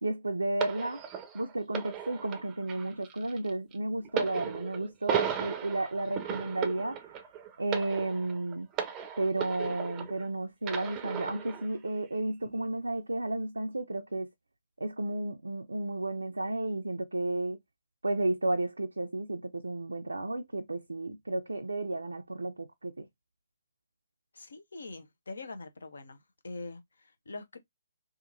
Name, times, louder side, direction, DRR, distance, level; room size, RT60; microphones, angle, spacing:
voice 1, 0.0-1.0 1.3-7.1 7.6-8.7 9.2-14.3 14.8-17.6 18.0-23.1, right 2 dB, 85° right, 0.4 m, -32 dB
sound 1, 0.6-10.3 10.6-11.7 12.5-12.6, right 8 dB, 25° right, 0.5 m, -36 dB
voice 2, 24.3-26.2 26.4-27.6, left 3 dB, 75° left, 0.7 m, -43 dB
2.8 x 2.4 x 2.5 m
figure-of-eight pair, 135°, 0 cm